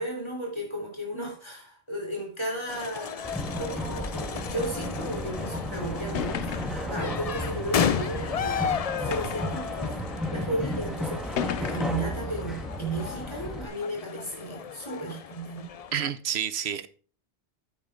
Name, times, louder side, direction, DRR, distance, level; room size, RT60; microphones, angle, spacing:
voice 1, 0.0-15.7, right 1 dB, 25° left, -1 dB, 3.6 m, -34 dB
sound 1, 2.7-16.1, left 8 dB, 50° left, 0.4 m, -34 dB
sound 2, 3.2-13.7, equal, ahead, 1.4 m, -33 dB
sound 3, 6.2-6.9 7.8-7.9 9.1-9.6 10.5-10.6 11.4-12.1, left 9 dB, 85° left, 1.0 m, -33 dB
voice 2, 15.9-16.9, right 8 dB, 70° right, 14 dB, 1.0 m, -29 dB
9.7 x 8.8 x 3.7 m, 0.39 s
omnidirectional pair, 1.1 m